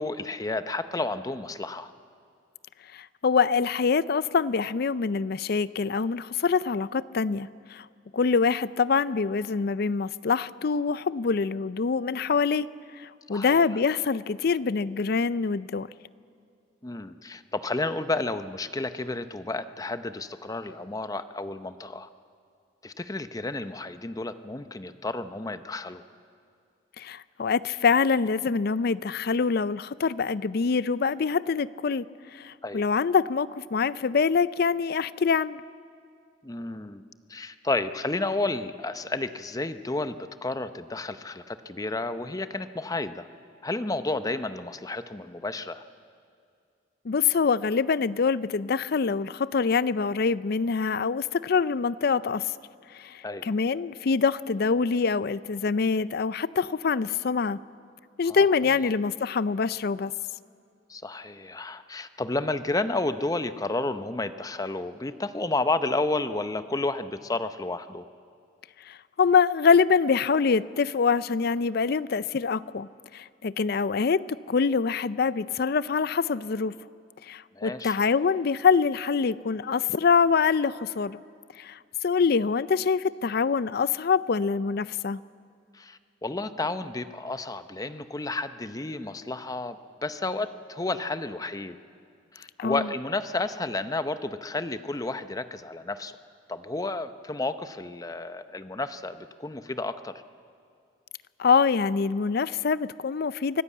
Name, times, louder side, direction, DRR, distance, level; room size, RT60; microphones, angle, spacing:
voice 1, 0.0-1.9 13.3-13.6 16.8-22.1 22.8-26.0 32.6-32.8 36.4-37.0 37.3-40.2 40.4-43.3 43.6-45.8 53.2-53.5 58.3-58.4 60.9-68.1 77.5-78.0 85.7-91.8 92.3-96.1 96.5-100.1, left 2 dB, 20° left, 11 dB, 0.7 m, -31 dB
voice 2, 2.9-7.9 8.1-12.7 13.0-15.9 27.0-32.0 32.3-35.6 47.0-52.4 52.9-57.6 58.2-60.1 68.9-76.7 77.3-81.2 81.6-85.2 92.6-92.9 101.4-103.6, left 5 dB, 55° left, 18 dB, 0.4 m, -25 dB
24.0 x 15.5 x 8.5 m, 2.3 s
head